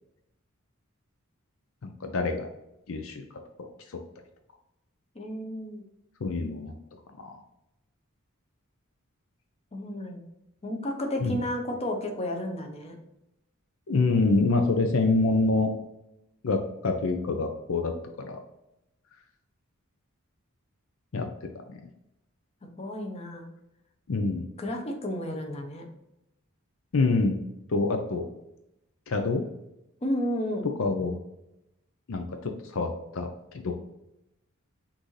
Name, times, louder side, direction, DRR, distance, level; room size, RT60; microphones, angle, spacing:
voice 1, 1.8-2.5 2.9-3.2 3.6-3.7 6.2-6.7 7.2-7.4 11.2-11.3 13.9-15.7 16.4-17.9 18.2-18.4 21.1-21.3 21.7-21.8 24.1-24.4 26.9-27.4 27.7-28.3 29.1-29.4 30.8-31.1 32.1-33.3 33.5-33.7, left 3 dB, 65° left, 5 dB, 0.5 m, -26 dB
voice 2, 5.1-5.8 9.7-10.2 10.6-13.0 22.6-23.5 24.6-25.9 30.0-30.7, left 1 dB, 30° left, 3 dB, 0.8 m, -32 dB
6.0 x 2.6 x 3.2 m, 0.88 s
head